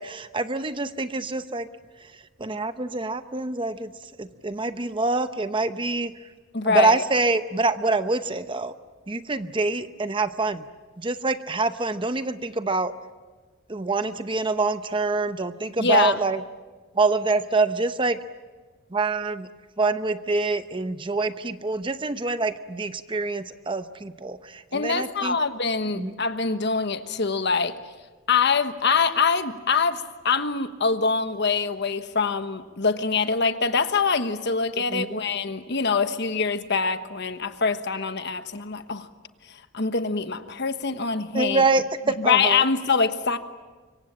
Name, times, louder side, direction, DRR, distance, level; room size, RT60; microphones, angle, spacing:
voice 1, 0.0-1.7 2.4-3.9 4.2-6.1 6.6-8.7 9.1-10.6 11.0-12.9 13.7-16.4 16.9-18.2 18.9-19.5 19.8-25.4 25.9-26.1 34.8-35.2 41.3-42.7, right 3 dB, 25° right, 11 dB, 0.8 m, -25 dB
voice 2, 6.5-7.0 15.8-16.2 24.7-27.8 28.3-39.1 39.7-41.6 42.2-43.4, left 5 dB, 55° left, 10 dB, 1.3 m, -24 dB
25.5 x 23.5 x 8.7 m, 1.3 s
head